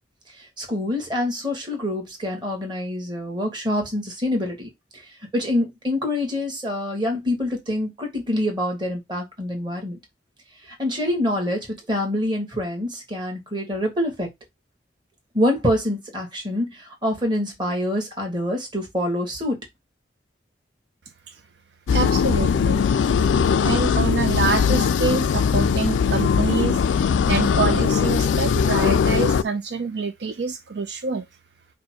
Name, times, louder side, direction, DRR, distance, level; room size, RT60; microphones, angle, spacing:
voice 1, 0.4-5.0 5.3-10.0 10.8-14.3 15.3-19.6, left 1 dB, 25° right, 1.6 m, -26 dB
sound 1, 21.9-29.4, left 6 dB, 85° left, 0.3 m, -20 dB
voice 2, 21.9-22.8 23.3-31.3, right 4 dB, 65° right, 0.5 m, -26 dB
5.0 x 2.2 x 4.5 m
head